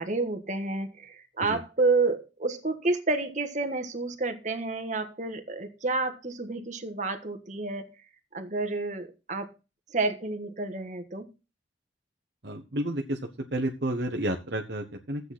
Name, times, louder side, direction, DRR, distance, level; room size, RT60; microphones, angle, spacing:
voice 1, 0.0-7.9 8.3-9.5 9.9-11.3, right 3 dB, 40° right, 6 dB, 1.4 m, -29 dB
voice 2, 12.4-13.2 13.5-15.3, right 1 dB, 60° right, 3 dB, 1.1 m, -31 dB
12.5 x 8.1 x 4.2 m, 0.29 s
head